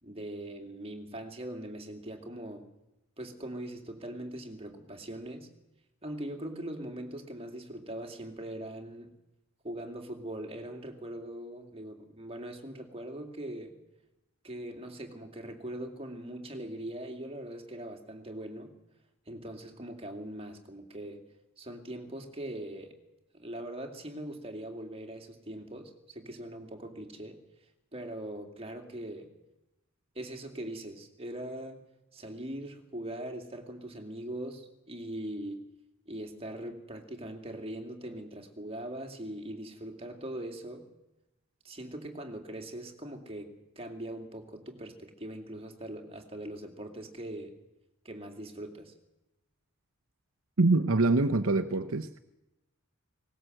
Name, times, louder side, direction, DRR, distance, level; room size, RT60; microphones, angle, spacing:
voice 1, 0.0-2.7 3.2-5.5 6.0-9.1 9.6-13.7 14.4-18.7 19.3-21.2 21.6-23.0 23.3-27.4 27.9-29.3 30.1-31.8 32.1-35.7 36.1-40.9 41.6-47.5 48.0-48.9, right 1 dB, 25° right, 4 dB, 2.6 m, -41 dB
voice 2, 50.6-52.2, right 3 dB, 70° right, 11 dB, 0.8 m, -25 dB
19.0 x 18.5 x 7.8 m, 0.94 s
head